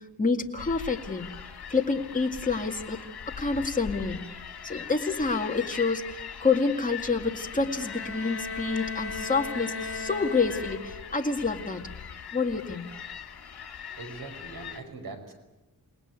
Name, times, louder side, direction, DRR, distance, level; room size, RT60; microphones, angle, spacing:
voice 1, 0.2-1.3 1.7-3.0 3.4-4.2 4.6-11.8 12.3-12.9, left 4 dB, 20° left, 2 dB, 2.1 m, -28 dB
sound 1, 0.6-14.8, left 7 dB, 85° left, 2.3 m, -41 dB
Bowed string instrument, 7.6-11.3, left 4 dB, 40° left, 4.1 m, -37 dB
voice 2, 14.0-15.3, right 3 dB, 70° right, 5 dB, 5.5 m, -41 dB
28.5 x 19.5 x 9.5 m, 1.1 s
wide cardioid pair, 165°, 37 cm